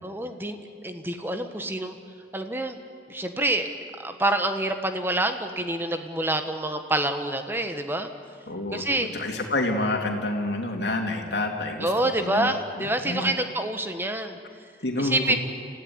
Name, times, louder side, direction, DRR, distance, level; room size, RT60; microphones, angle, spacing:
voice 1, 0.0-1.9 2.3-2.8 3.1-3.7 4.0-8.1 8.7-9.1 11.8-14.4 15.0-15.4, right 1 dB, 10° right, 7 dB, 1.4 m, -27 dB
voice 2, 8.5-8.8 9.1-12.5 12.8-13.3 14.8-15.4, left 2 dB, 65° left, 2 dB, 3.2 m, -28 dB
28.0 x 15.0 x 9.8 m, 2.4 s
head